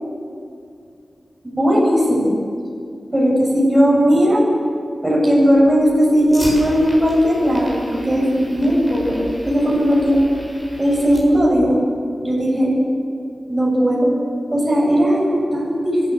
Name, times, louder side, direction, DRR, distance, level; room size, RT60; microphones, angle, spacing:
voice 1, 1.4-2.3 3.1-4.4 5.0-10.2 10.8-11.8 12.2-12.7 13.5-14.1 14.5-16.1, equal, 15° right, -5 dB, 7.9 m, -17 dB
Fire, 5.5-11.5, equal, ahead, 6.9 m, -35 dB
25.5 x 14.5 x 7.9 m, 2.4 s
wide cardioid pair, 85°, 0 cm